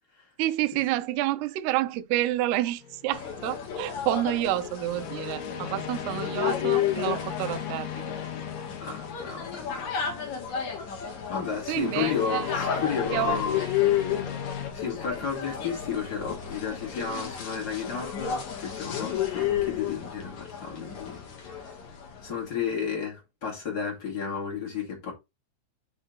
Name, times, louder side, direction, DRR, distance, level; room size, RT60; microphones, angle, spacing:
voice 1, 0.4-7.9 11.7-12.6 13.1-13.4, right 15 dB, 80° right, 2.5 m, -29 dB
sound 1, 2.8-3.2 4.8-9.9 11.6-14.7, left 8 dB, 65° left, 3.2 m, -37 dB
sound 2, 3.1-22.4, left 9 dB, 50° left, 2.7 m, -32 dB
voice 2, 8.8-9.9 11.3-13.7 14.7-21.7 22.2-25.1, left 7 dB, 30° left, 2.0 m, -32 dB
10.0 x 3.9 x 3.8 m
omnidirectional pair, 5.3 m